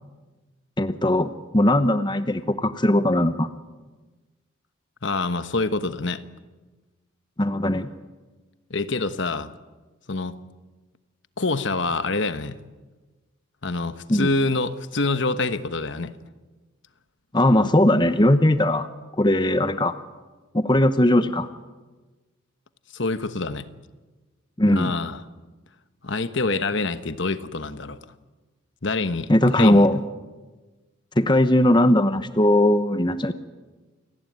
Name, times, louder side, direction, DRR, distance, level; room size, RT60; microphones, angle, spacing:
voice 1, 0.8-3.5 7.4-7.9 14.1-14.3 17.3-18.9 19.2-20.0 20.5-21.5 24.6-24.9 29.3-30.0 31.2-33.3, left 1 dB, 20° left, 11 dB, 0.9 m, -19 dB
voice 2, 5.0-6.2 8.7-9.5 10.1-10.4 11.4-12.6 13.6-16.1 22.9-23.7 24.7-25.2 26.0-28.0 28.8-29.9, left 3 dB, 60° left, 12 dB, 1.2 m, -26 dB
28.5 x 19.0 x 9.4 m, 1.2 s
head